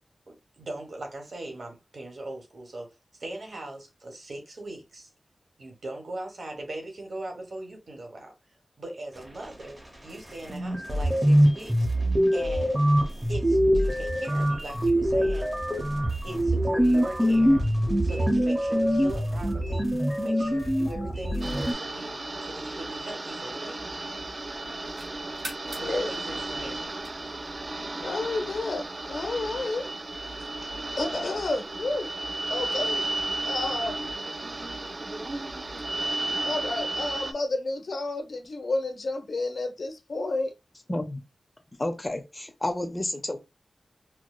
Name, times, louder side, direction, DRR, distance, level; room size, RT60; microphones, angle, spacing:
voice 1, 0.3-2.9 3.2-5.1 5.6-8.3 8.8-11.9 12.3-12.9 13.3-15.5 16.2-17.7 18.0-19.8 20.2-23.9 25.8-26.8 27.2-27.3, right 2 dB, 65° right, 1.2 m, -40 dB
sound 1, 10.1-10.2 10.5-21.7, equal, 20° right, 0.9 m, -24 dB
sound 2, 21.4-37.3, right 2 dB, 35° right, 0.4 m, -34 dB
sound 3, 24.8-27.5, right 2 dB, 80° right, 1.6 m, -45 dB
voice 2, 25.6-26.1 28.0-29.8 31.0-32.1 32.5-33.1 33.5-34.2 36.4-40.5, left 2 dB, 70° left, 0.8 m, -31 dB
voice 3, 40.9-41.2 41.8-43.4, left 1 dB, 25° left, 0.7 m, -30 dB
4.6 x 2.2 x 2.3 m
wide cardioid pair, 90°, 0 cm